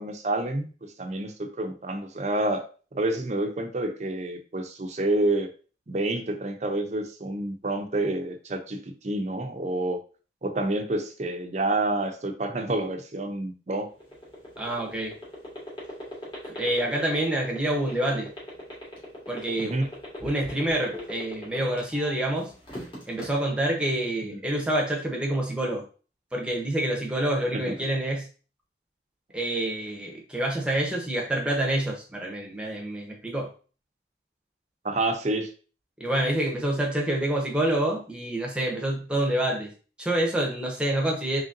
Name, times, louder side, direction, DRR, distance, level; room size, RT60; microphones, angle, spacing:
voice 1, 0.0-2.6 2.9-5.5 5.9-10.0 10.4-13.9 19.6-19.9 24.3-24.4 27.5-27.7 34.8-35.5, right 2 dB, 40° right, 5 dB, 0.6 m, -28 dB
sound 1, 13.9-22.1 22.5-23.2, left 1 dB, 30° left, 1.5 m, -38 dB
voice 2, 14.6-15.2 16.5-18.3 19.3-19.8 20.2-22.5 23.1-25.8 26.3-28.3 29.3-33.5 36.0-39.7 40.0-41.4, right 1 dB, 5° right, -1 dB, 0.9 m, -27 dB
3.9 x 3.3 x 2.6 m, 0.37 s
head